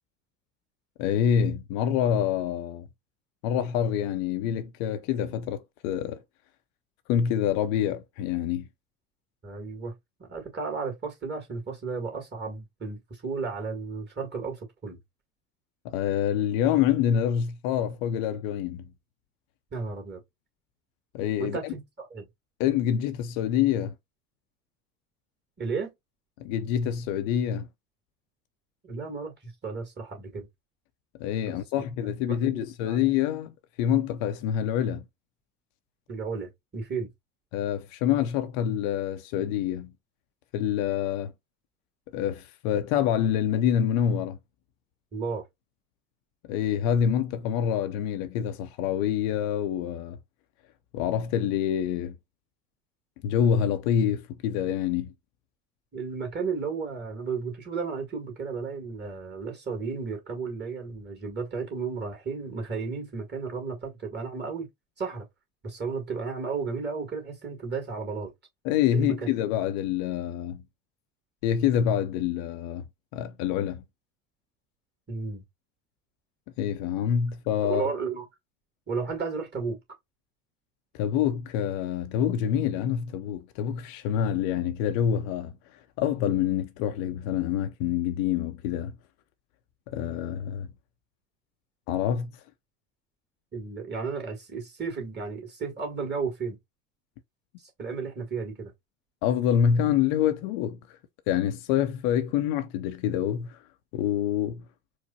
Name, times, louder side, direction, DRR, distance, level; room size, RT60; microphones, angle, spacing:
voice 1, 1.0-2.9 3.4-6.2 7.1-8.7 15.8-18.9 21.1-21.7 22.6-23.9 26.4-27.7 31.2-35.0 37.5-39.9 40.5-41.3 42.1-44.4 46.5-50.2 50.9-52.2 53.2-55.1 68.6-70.6 71.4-72.8 73.1-73.8 76.6-77.9 80.9-85.5 86.0-88.9 89.9-90.7 91.9-92.3 99.2-101.0 101.3-103.6 103.9-104.6, left 9 dB, 55° left, 0.7 m, -26 dB
voice 2, 9.4-9.9 10.2-15.0 19.7-20.2 21.4-22.3 25.6-25.9 28.8-30.5 31.4-31.6 32.3-33.0 36.1-37.1 45.1-45.4 55.9-64.7 65.0-65.2 65.6-68.3 68.9-69.1 75.1-75.4 77.6-78.2 78.9-79.8 93.5-96.6 97.6-98.7, right 5 dB, 25° right, 2.3 m, -33 dB
4.6 x 2.1 x 4.0 m
hypercardioid pair, 70°, 41 cm